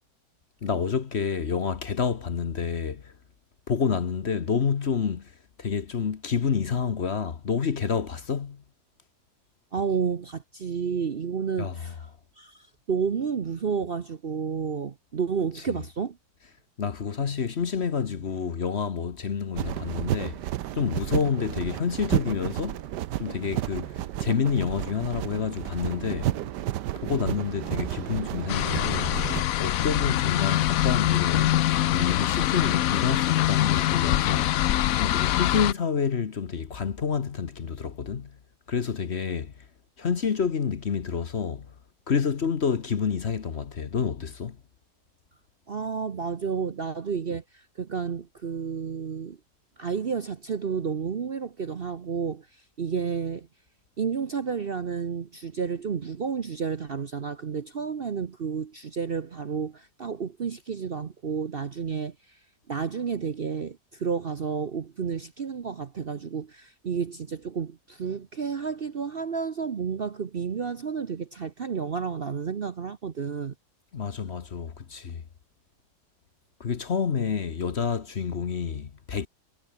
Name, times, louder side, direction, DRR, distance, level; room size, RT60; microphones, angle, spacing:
voice 1, 0.6-3.1 3.7-8.6 11.6-11.9 16.8-20.4 20.7-22.8 23.2-26.3 27.0-29.1 29.6-31.7 31.9-34.6 35.0-38.4 38.7-39.6 40.0-41.7 42.1-44.6 73.9-75.2 76.6-79.3, left 6 dB, 45° left, 1.2 m, -28 dB
voice 2, 9.7-12.1 12.4-16.2 45.7-49.4 49.8-52.5 52.8-53.5 54.0-62.4 62.7-73.5, right 6 dB, 45° right, 0.9 m, -31 dB
sound 1, 19.5-29.4, right 13 dB, 90° right, 1.4 m, -31 dB
sound 2, 28.5-35.7, left 13 dB, 65° left, 1.0 m, -24 dB
omnidirectional pair, 1.8 m